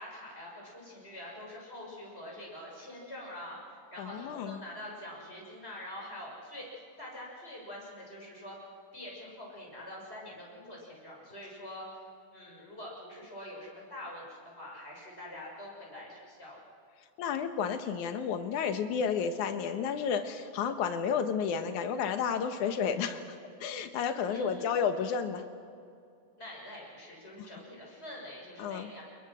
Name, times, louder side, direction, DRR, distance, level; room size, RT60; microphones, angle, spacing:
voice 1, 0.0-6.7 7.0-8.6 8.9-11.9 12.3-14.3 14.6-16.6 24.3-24.8 26.4-29.0, left 1 dB, 15° left, -2 dB, 6.3 m, -45 dB
voice 2, 4.0-4.6 17.2-23.2 23.6-25.4 27.4-27.5 28.6-28.9, left 7 dB, 65° left, 8 dB, 2.4 m, -31 dB
28.0 x 21.5 x 6.4 m, 2.4 s
omnidirectional pair, 4.3 m